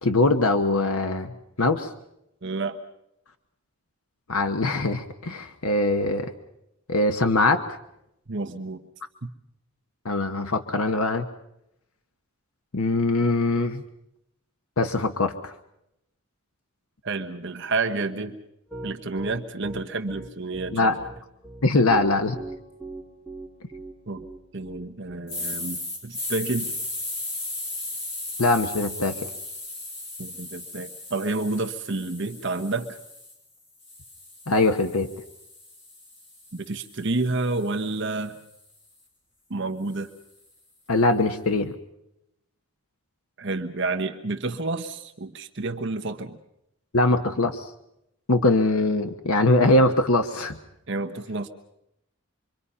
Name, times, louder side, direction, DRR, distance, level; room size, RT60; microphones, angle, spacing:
voice 1, 0.0-1.9 4.3-6.3 6.9-7.6 10.0-11.3 12.7-13.8 14.8-15.5 20.7-20.9 21.6-22.4 28.4-29.3 34.5-35.1 40.9-41.7 46.9-47.7 48.3-50.6, left 2 dB, 75° left, 7 dB, 1.2 m, -22 dB
voice 2, 2.4-2.8 8.3-8.8 9.2-9.3 17.0-18.4 18.8-20.9 24.1-24.3 24.5-26.7 30.2-33.0 36.5-38.4 39.5-40.1 43.4-46.4 50.9-51.5, right 3 dB, 55° right, 5 dB, 1.2 m, -29 dB
Piano, 18.7-25.2, right 2 dB, 5° left, 3.6 m, -38 dB
sound 1, 25.3-33.3 33.8-38.0, left 2 dB, 50° left, 5.6 m, -36 dB
27.0 x 24.0 x 5.6 m, 0.82 s
head